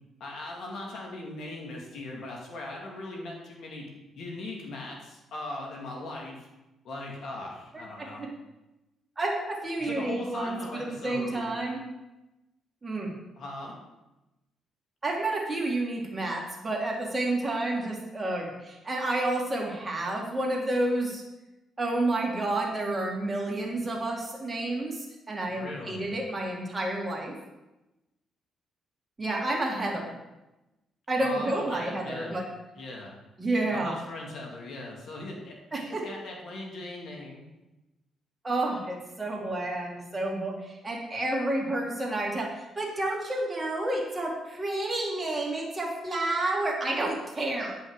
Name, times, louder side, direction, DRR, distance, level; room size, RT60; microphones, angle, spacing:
voice 1, 0.2-3.9 4.2-6.5 6.8-8.2 9.8-11.5 13.4-13.7 25.5-26.1 29.9-30.0 31.2-32.3 32.7-33.2 33.7-37.4, left 2 dB, 70° left, -1 dB, 2.2 m, -39 dB
voice 2, 7.7-8.3 9.2-11.8 12.8-13.1 15.0-21.2 21.8-27.3 29.2-30.1 31.1-32.5 33.4-34.0 35.7-36.0 38.4-47.8, right 2 dB, 20° right, -2 dB, 2.3 m, -30 dB
10.0 x 5.6 x 4.8 m, 1.0 s
cardioid pair, 90°, 0 cm